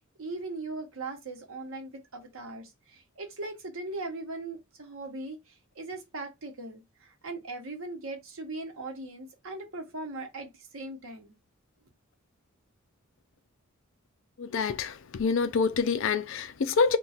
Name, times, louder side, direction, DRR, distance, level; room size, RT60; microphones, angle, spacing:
voice 1, 0.2-11.3, right 2 dB, 65° right, 0.8 m, -39 dB
voice 2, 14.4-17.0, left 5 dB, 60° left, 0.4 m, -26 dB
2.4 x 2.2 x 4.0 m
head